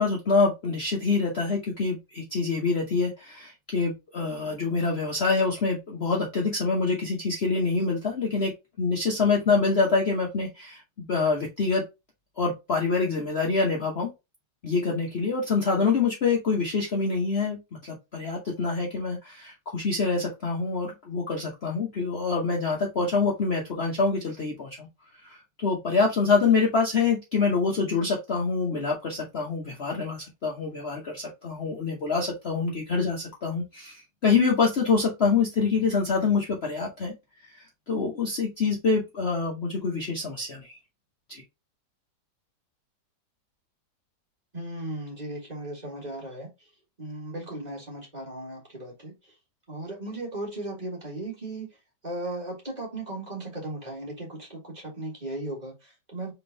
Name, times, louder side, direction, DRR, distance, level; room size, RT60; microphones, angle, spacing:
voice 1, 0.0-11.8 12.4-14.1 14.6-24.9 25.2-37.1 37.4-40.8 41.3-41.4, left 4 dB, 45° left, 1.0 m, -26 dB
voice 2, 44.5-46.7 47.0-49.4 49.7-51.8 52.0-56.3, right 1 dB, 25° right, 1.8 m, -36 dB
3.7 x 3.5 x 3.9 m
omnidirectional pair, 1.9 m